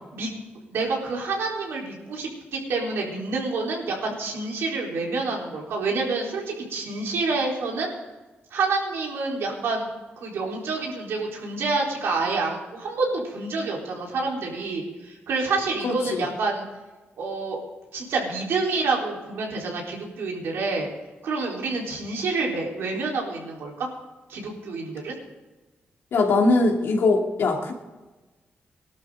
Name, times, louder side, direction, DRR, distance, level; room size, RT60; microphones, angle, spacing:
voice 1, 0.7-7.9 8.5-9.9 10.2-16.7 17.2-17.6 17.9-20.9 21.2-23.9 24.3-25.1, right 3 dB, 85° right, -1 dB, 4.0 m, -28 dB
voice 2, 15.8-16.3 26.1-27.7, left 3 dB, 75° left, 1 dB, 2.5 m, -21 dB
19.5 x 12.0 x 3.8 m, 1.2 s
cardioid pair, 85°, 4 cm